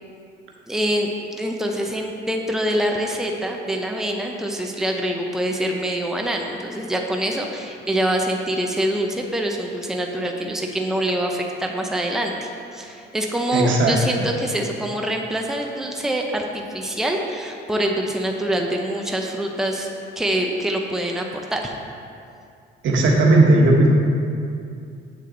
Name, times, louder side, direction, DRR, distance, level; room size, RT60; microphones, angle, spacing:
voice 1, 0.7-19.9 20.2-21.3 21.5-21.7, right 1 dB, ahead, 1 dB, 0.7 m, -25 dB
voice 2, 13.5-13.9 22.8-23.9, right 2 dB, 75° right, -1 dB, 1.3 m, -15 dB
7.9 x 6.4 x 3.9 m, 2.5 s
cardioid pair, 90°, 20 cm